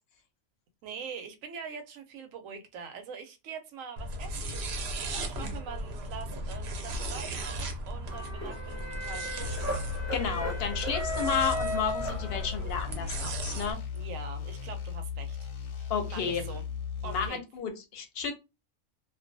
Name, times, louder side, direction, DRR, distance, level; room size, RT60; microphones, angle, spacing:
voice 1, 0.8-4.7 5.2-9.6 13.9-15.4 15.8-16.6 17.0-17.4, right 6 dB, 90° right, 7 dB, 1.0 m, -43 dB
sound 1, 4.0-13.7, right 1 dB, 65° right, 0.8 m, -37 dB
sound 2, 8.1-12.9, equal, 15° left, 0.7 m, -36 dB
sound 3, 9.4-17.3, left 7 dB, 90° left, 1.0 m, -37 dB
voice 2, 10.1-13.8 15.9-16.4 17.0-18.3, left 6 dB, 60° left, 7 dB, 0.7 m, -32 dB
2.3 x 2.2 x 2.5 m, 0.25 s
omnidirectional pair, 1.3 m